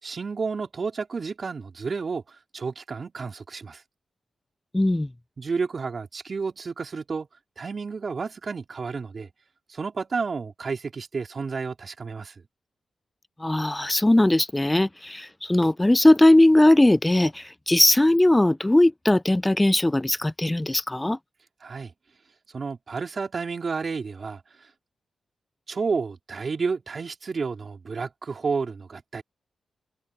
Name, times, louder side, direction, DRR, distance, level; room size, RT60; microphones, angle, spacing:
voice 1, 0.0-3.8 5.4-7.3 7.6-9.3 9.7-12.3 21.6-21.9 22.5-24.4 25.7-29.2, right 4 dB, 55° right, 4.1 m, -31 dB
voice 2, 4.7-5.1 13.4-21.2, left 1 dB, 15° left, 0.4 m, -19 dB
supercardioid pair, 45°, 0 cm